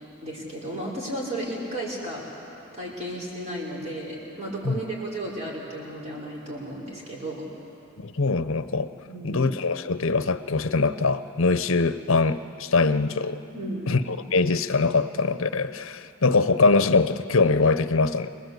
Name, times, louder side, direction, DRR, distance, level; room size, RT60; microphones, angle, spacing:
voice 1, 0.2-2.2 2.7-7.5 9.0-9.4 13.5-13.9, right 1 dB, 30° right, -3 dB, 5.1 m, -34 dB
voice 2, 8.0-8.9 9.2-13.4 13.9-18.3, left 3 dB, 65° left, 12 dB, 0.8 m, -23 dB
27.5 x 20.0 x 8.0 m, 2.8 s
head